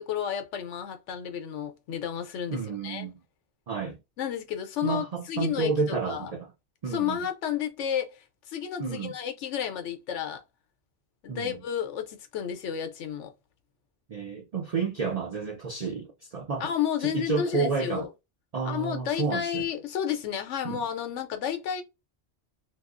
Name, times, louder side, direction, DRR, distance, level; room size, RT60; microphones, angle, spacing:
voice 1, 0.0-3.1 4.2-6.3 6.9-10.4 11.2-13.3 16.6-18.1 18.6-21.8, left 9 dB, 85° left, 0.9 m, -32 dB
voice 2, 2.5-3.2 3.7-4.0 4.8-6.5 6.8-7.3 8.8-9.1 11.3-11.6 14.1-16.7 17.0-18.1 18.5-19.7 20.6-20.8, right 4 dB, 75° right, 0.3 m, -30 dB
2.9 x 2.3 x 2.4 m
omnidirectional pair, 1.2 m